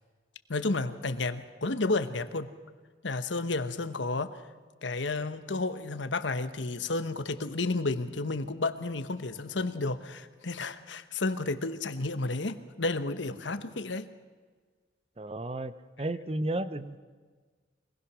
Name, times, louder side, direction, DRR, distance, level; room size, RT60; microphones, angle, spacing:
voice 1, 0.5-2.5 3.0-4.4 4.8-14.1, left 3 dB, 75° left, 11 dB, 1.2 m, -31 dB
voice 2, 15.2-15.7 16.0-17.0, right 1 dB, 30° right, 13 dB, 0.8 m, -33 dB
25.0 x 19.5 x 6.2 m, 1.5 s
head